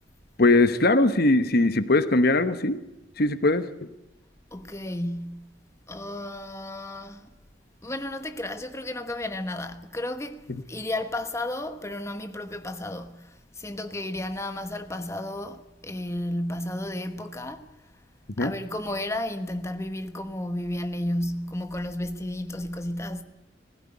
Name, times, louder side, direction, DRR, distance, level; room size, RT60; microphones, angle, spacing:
voice 1, 0.4-2.8 3.2-3.7 10.5-10.6 18.4-18.5, left 2 dB, 55° left, 1.1 m, -21 dB
voice 2, 4.5-5.5 5.9-7.3 7.8-17.7 18.4-23.2, left 1 dB, 15° left, 1.1 m, -33 dB
19.5 x 16.0 x 9.6 m
head